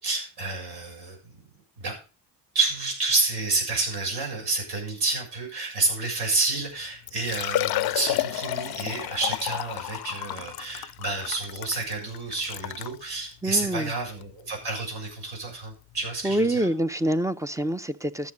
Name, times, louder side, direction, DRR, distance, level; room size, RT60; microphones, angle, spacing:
voice 1, 0.0-1.5 1.8-2.0 2.5-16.7, right 3 dB, 65° right, 7.2 m, -29 dB
Liquid, 6.6-6.7 7.1-13.0 13.7-13.8 14.2-14.3 15.9-16.2, left 16 dB, 65° left, 0.5 m, -31 dB
voice 2, 13.4-13.9 16.2-18.3, right 1 dB, 10° right, 0.5 m, -26 dB
13.0 x 7.4 x 5.2 m
cardioid pair, 100°, 41 cm